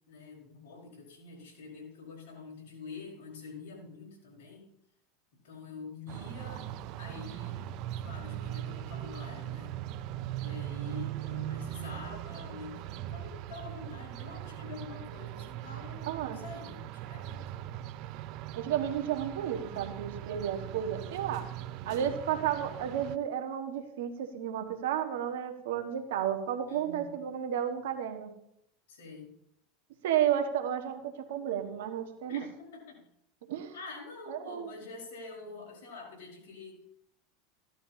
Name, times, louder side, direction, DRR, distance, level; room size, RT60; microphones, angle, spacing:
voice 1, 0.0-4.7 5.4-7.7 7.9-9.7 10.4-17.5 26.7-27.2 28.9-29.3 32.3-33.0 33.7-36.8, left 4 dB, 80° left, 0 dB, 4.7 m, -46 dB
sound 1, 6.1-23.2, right 13 dB, 55° right, 0.5 m, -40 dB
voice 2, 16.1-16.4 18.5-21.5 21.8-28.3 30.0-32.5 33.5-33.7 34.3-34.7, right 10 dB, 75° right, 5 dB, 1.5 m, -32 dB
15.5 x 11.5 x 2.8 m, 0.78 s
hypercardioid pair, 100°, 0 cm